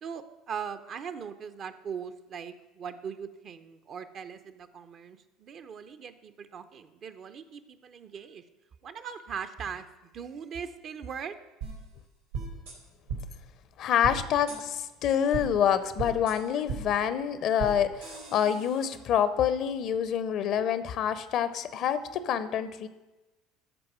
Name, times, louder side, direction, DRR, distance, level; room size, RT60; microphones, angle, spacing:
voice 1, 0.0-8.5 8.8-9.9 10.1-11.3, right 7 dB, 45° right, 9 dB, 0.6 m, -40 dB
sound 1, 11.6-11.7 12.3-12.7 13.1-13.2 14.0-14.2 14.5-14.6 15.3-15.4 16.0-16.3 16.7-16.8 17.6-17.7 18.0-19.0, right 5 dB, 90° right, 3.2 m, -35 dB
voice 2, 13.8-22.9, left 9 dB, 55° left, 13 dB, 0.6 m, -27 dB
13.0 x 4.7 x 6.0 m, 1.1 s
hypercardioid pair, 65°, 0 cm